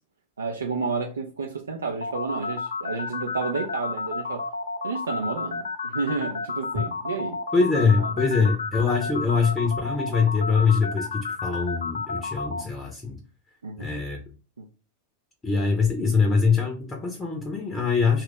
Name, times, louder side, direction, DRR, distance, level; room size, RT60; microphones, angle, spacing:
voice 1, 0.4-4.4 4.8-7.4 8.0-8.1 9.0-9.1 13.6-14.0 14.6-14.7, right 4 dB, 70° right, 0.5 m, -31 dB
sound 1, 2.0-12.6, left 4 dB, 70° left, 0.3 m, -31 dB
voice 2, 7.5-13.2 13.8-14.2 15.4-18.2, left 5 dB, 15° left, 0.7 m, -23 dB
2.8 x 2.4 x 3.6 m
figure-of-eight pair, 90°, 0 cm